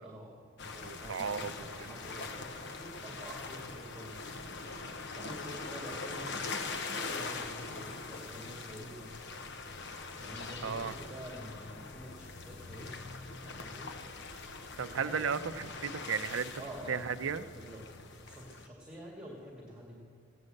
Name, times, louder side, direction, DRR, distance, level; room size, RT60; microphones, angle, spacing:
voice 1, 0.0-4.2 5.1-6.5 6.9-9.2 10.2-13.0 13.4-13.9 15.0-15.2 16.6-17.0 17.5-17.8 18.1-20.0, equal, 5° right, -3 dB, 1.9 m, -48 dB
sound 1, 0.6-18.7, left 4 dB, 60° left, 0.8 m, -42 dB
voice 2, 0.8-1.9 10.6-10.9 14.8-16.5 16.9-17.4, right 6 dB, 75° right, 12 dB, 0.5 m, -35 dB
16.0 x 9.7 x 6.6 m, 2.1 s
head